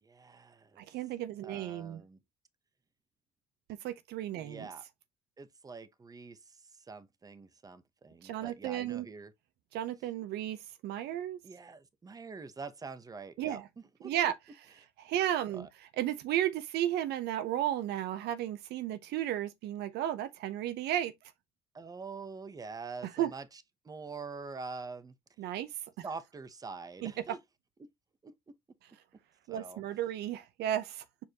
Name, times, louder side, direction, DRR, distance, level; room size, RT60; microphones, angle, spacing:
voice 1, 0.0-0.9 1.4-2.2 4.4-4.8 5.4-9.3 11.4-14.1 15.5-15.7 21.7-25.2 26.0-27.4 28.2-28.3 29.5-29.8, right 4 dB, 20° right, 0.9 m, -45 dB
voice 2, 0.8-2.0 3.7-4.7 8.2-9.1 9.7-11.4 13.4-13.6 14.0-14.3 15.0-15.7 16.0-21.1 23.2-23.3 25.4-25.7 27.0-27.1 29.5-31.0, right 12 dB, 80° right, 0.8 m, -33 dB
7.0 x 4.7 x 2.9 m
cardioid pair, 110°, 17 cm